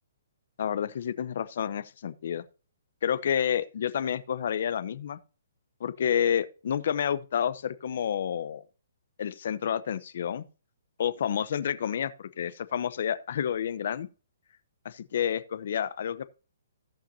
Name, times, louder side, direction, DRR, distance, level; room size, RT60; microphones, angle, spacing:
voice 1, 0.6-2.4 3.0-5.2 5.8-8.6 9.2-10.5 11.0-14.1 14.8-16.2, left 8 dB, 55° left, 0.8 m, -29 dB
17.0 x 5.8 x 2.8 m
hypercardioid pair, 160°, 0 cm